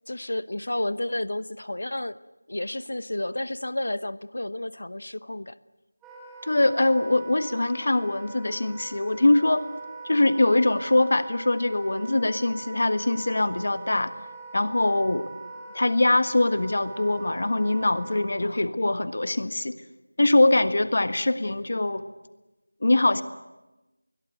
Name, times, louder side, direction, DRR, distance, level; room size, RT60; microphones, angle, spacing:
voice 1, 0.1-2.2 2.5-5.6 18.4-18.6, left 1 dB, 70° left, 16 dB, 1.0 m, -31 dB
Wind instrument woodwind instrument, 6.0-18.3, right 4 dB, 5° right, 1.5 m, -42 dB
voice 2, 6.4-9.7 10.0-14.1 14.5-15.3 15.7-19.7 20.2-22.0 22.8-23.2, left 2 dB, 50° left, 12 dB, 1.5 m, -23 dB
27.5 x 21.5 x 8.0 m, 1.1 s
figure-of-eight pair, 175°, 0 cm